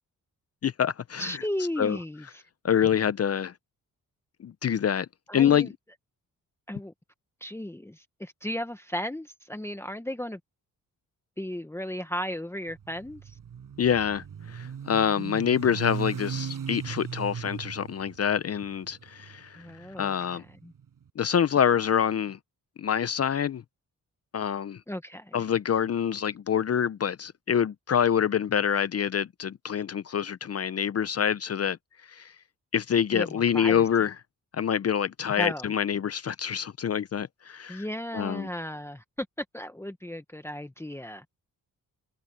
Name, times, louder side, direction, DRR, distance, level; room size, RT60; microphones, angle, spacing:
voice 1, 0.6-1.4 1.8-2.0 2.6-3.5 4.4-5.1 5.3-5.7 13.8-19.6 20.0-20.4 21.2-22.4 22.8-23.6 24.3-24.8 25.3-31.8 32.1-32.3 32.7-34.1 34.5-37.8 38.1-38.5, left 8 dB, 45° left, 0.6 m, -26 dB
voice 2, 1.2-2.4 5.3-5.7 6.7-6.9 7.4-10.4 11.4-13.3 19.6-20.1 20.6-20.7 24.9-25.4 33.1-33.9 35.4-35.7 37.7-41.2, left 1 dB, 5° left, 1.1 m, -35 dB
Motorcycle, 12.7-20.9, right 8 dB, 70° right, 6.7 m, -38 dB
cardioid pair, 90°, 34 cm